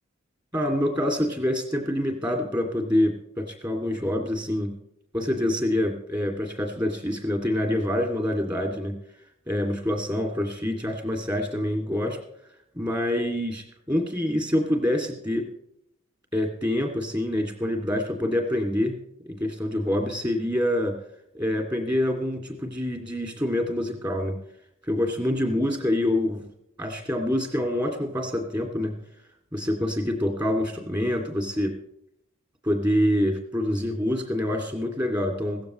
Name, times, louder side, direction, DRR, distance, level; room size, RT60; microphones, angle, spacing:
voice 1, 0.5-4.8 5.1-9.0 9.5-12.2 12.7-15.5 16.3-19.0 19.3-21.0 21.3-24.4 24.9-26.4 26.8-29.0 29.5-31.8 32.6-35.6, left 1 dB, 20° right, 3 dB, 2.5 m, -26 dB
17.0 x 14.5 x 3.2 m, 0.75 s
head